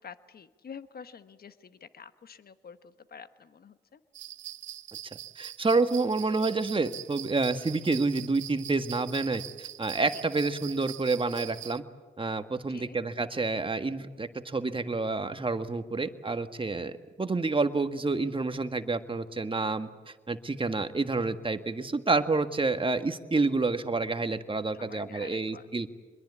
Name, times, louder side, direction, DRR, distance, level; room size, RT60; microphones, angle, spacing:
voice 1, 0.0-4.0 10.1-10.2 12.7-13.0 24.7-25.9, left 6 dB, 50° left, 12 dB, 1.2 m, -48 dB
sound 1, 4.1-11.8, right 12 dB, 75° right, 0.8 m, -43 dB
voice 2, 5.4-11.8 12.2-25.9, right 3 dB, 25° right, 9 dB, 1.7 m, -29 dB
25.0 x 21.5 x 8.5 m, 1.3 s
supercardioid pair, 55°, 20 cm